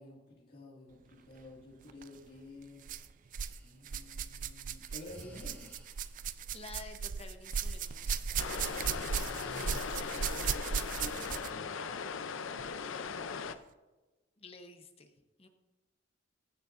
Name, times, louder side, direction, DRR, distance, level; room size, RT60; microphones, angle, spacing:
voice 1, 0.0-2.9 3.6-5.7 9.9-11.7, left 1 dB, 50° left, -4 dB, 2.1 m, -51 dB
sound 1, 1.9-2.1 2.8-3.6 3.8-11.6 12.6-12.7 13.5-13.6, right 7 dB, 40° right, 0.3 m, -37 dB
Breathing, 3.4-3.7 4.8-6.1 7.8-10.5, equal, 10° left, 1.8 m, -53 dB
voice 2, 6.5-8.4 12.9-13.4 14.4-15.1 15.4-15.5, left 3 dB, 30° left, 6 dB, 0.8 m, -51 dB
sound 2, 8.4-13.6, left 5 dB, 80° left, 0.5 m, -39 dB
15.5 x 6.6 x 2.5 m, 1.2 s
head